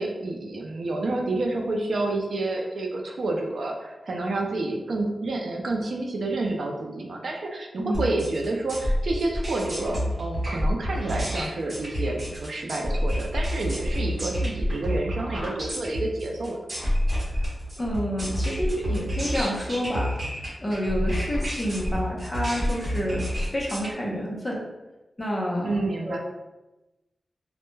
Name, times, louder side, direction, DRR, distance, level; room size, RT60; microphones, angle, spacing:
voice 1, 0.0-16.6 25.6-26.2, right 2 dB, 70° right, 1 dB, 0.4 m, -29 dB
sound 1, 7.9-23.9, equal, 45° right, 0.9 m, -28 dB
voice 2, 17.8-20.1 20.6-23.2 23.5-24.6 25.2-26.2, equal, 20° left, -3 dB, 0.6 m, -29 dB
2.2 x 2.0 x 3.1 m, 1.0 s
wide cardioid pair, 120°, 0 cm